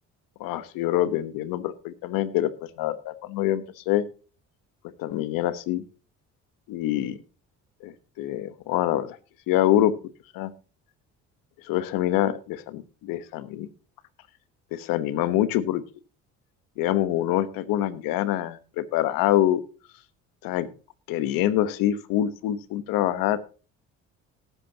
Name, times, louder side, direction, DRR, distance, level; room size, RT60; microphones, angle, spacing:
voice 1, 0.4-2.5 2.8-4.0 5.0-5.8 6.7-7.2 7.8-9.2 9.5-9.9 10.3-10.5 11.7-13.7 14.7-15.8 16.8-19.6 20.4-20.7 21.1-23.4, left 13 dB, 80° left, 14 dB, 1.2 m, -25 dB
18.5 x 8.2 x 2.8 m, 0.36 s
supercardioid pair, 70°, 34 cm